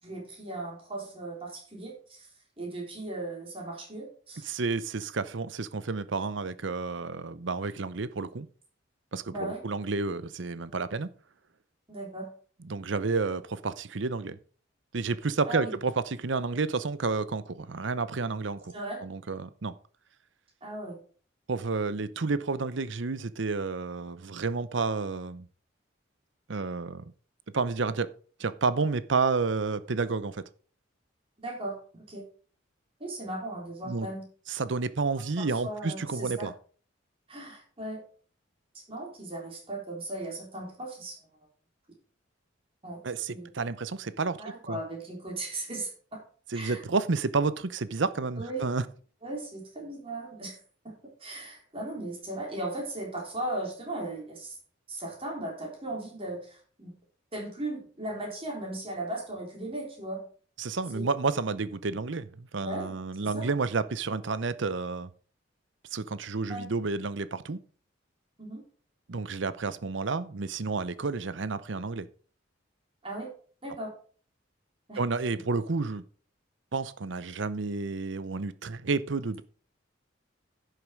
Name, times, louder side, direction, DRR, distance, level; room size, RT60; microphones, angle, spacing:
voice 1, 0.0-2.3 2.6-4.5 9.3-9.6 11.9-12.3 15.5-15.8 18.7-19.0 20.6-21.0 31.4-32.2 33.0-34.2 35.2-36.5 37.3-38.0 38.7-41.2 42.8-43.0 43.3-43.5 44.4-46.2 46.5-46.8 48.4-48.7 49.2-50.6 50.8-54.6 54.9-56.9 57.3-60.3 60.9-61.0 62.6-62.9 63.2-63.5 66.5-66.6 68.4-68.6 73.0-73.3 73.6-73.9 74.9-75.0, right 2 dB, 30° right, 3.7 m, -37 dB
voice 2, 4.4-8.5 9.1-11.1 12.6-14.4 14.9-18.7 19.0-19.7 21.5-25.5 26.5-27.0 27.5-28.1 28.4-30.4 33.8-34.1 34.5-36.5 43.0-44.4 44.7-44.8 46.5-48.8 60.6-65.1 65.9-67.6 69.1-72.1 75.0-76.0 76.7-79.4, right 4 dB, 65° right, 0.7 m, -30 dB
11.0 x 6.6 x 5.1 m
head